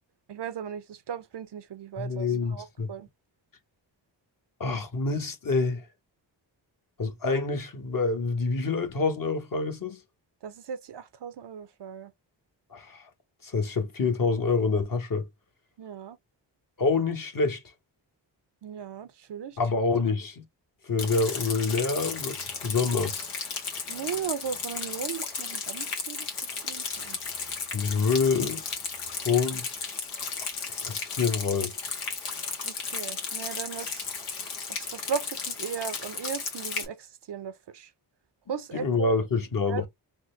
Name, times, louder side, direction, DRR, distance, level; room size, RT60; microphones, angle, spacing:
voice 1, 0.3-3.1 10.4-12.1 15.8-16.2 18.6-19.6 23.9-26.3 26.6-27.2 32.6-34.1 34.7-37.9 38.5-39.2 39.7-39.8, right 7 dB, 60° right, 0.7 m, -37 dB
voice 2, 2.0-2.9 4.6-5.8 7.0-10.0 12.7-13.1 13.4-15.3 16.8-17.6 19.6-20.4 20.8-23.3 27.7-28.6 29.1-29.7 30.7-31.7 38.7-39.9, left 4 dB, 40° left, 1.1 m, -27 dB
Rain, 21.0-36.9, left 5 dB, 85° left, 1.3 m, -34 dB
3.8 x 2.2 x 3.2 m
cardioid pair, 50°, 49 cm